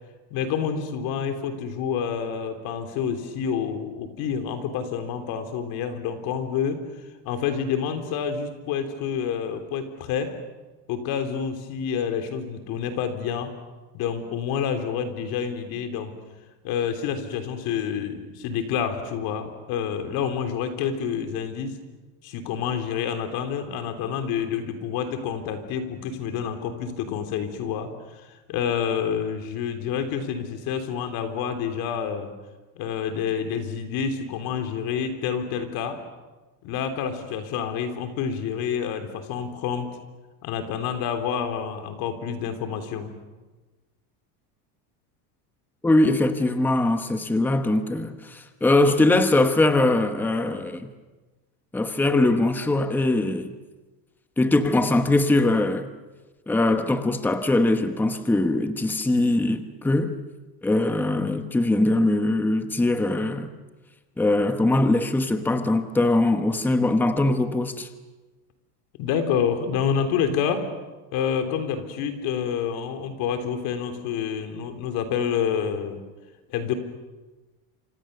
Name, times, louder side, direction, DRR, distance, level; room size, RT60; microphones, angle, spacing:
voice 1, 0.3-6.9 7.2-10.3 10.9-13.5 13.9-16.2 16.6-21.8 22.2-32.3 32.8-36.0 36.6-39.9 40.4-43.2 69.0-70.7 71.1-76.0 76.5-76.7, left 7 dB, 55° left, 3.5 m, -28 dB
voice 2, 45.8-50.9 51.7-53.5 54.4-55.9 56.5-60.2 60.6-63.5 64.2-67.9, left 2 dB, 5° left, 1.0 m, -22 dB
28.0 x 26.5 x 6.8 m
cardioid pair, 160°, 44 cm